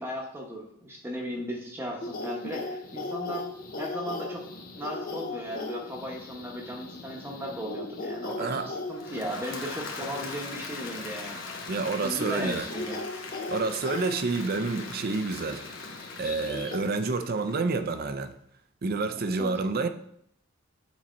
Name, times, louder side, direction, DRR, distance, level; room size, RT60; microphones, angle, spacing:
voice 1, 0.0-3.5 3.8-4.5 4.8-11.4 12.0-13.0 19.4-19.5, equal, 10° right, 1.0 m, -36 dB
sound 1, 2.0-16.8, left 3 dB, 40° left, 0.7 m, -39 dB
voice 2, 8.4-8.7 11.7-12.7 13.5-15.6 16.2-18.3 18.8-19.9, right 3 dB, 45° right, 0.5 m, -28 dB
Applause / Crowd, 8.8-18.0, left 4 dB, 60° left, 1.1 m, -41 dB
7.5 x 4.2 x 4.4 m
head